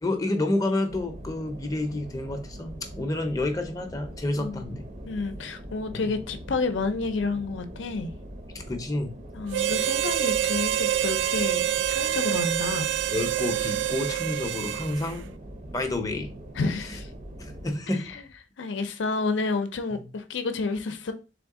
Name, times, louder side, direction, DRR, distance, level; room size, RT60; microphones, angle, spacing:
voice 1, 0.0-4.8 5.9-6.1 8.5-9.1 13.1-15.3 15.7-16.3 16.8-17.0 17.4-18.2 19.9-20.1, left 2 dB, 20° left, 0.6 m, -29 dB
sound 1, 0.9-17.7, right 1 dB, 40° right, 0.7 m, -42 dB
voice 2, 5.1-8.1 9.3-12.9 16.6-17.1 17.9-18.2 18.6-21.1, left 3 dB, 85° left, 0.5 m, -30 dB
Harmonica, 9.5-15.2, right 11 dB, 80° right, 0.3 m, -27 dB
3.6 x 3.5 x 3.6 m
head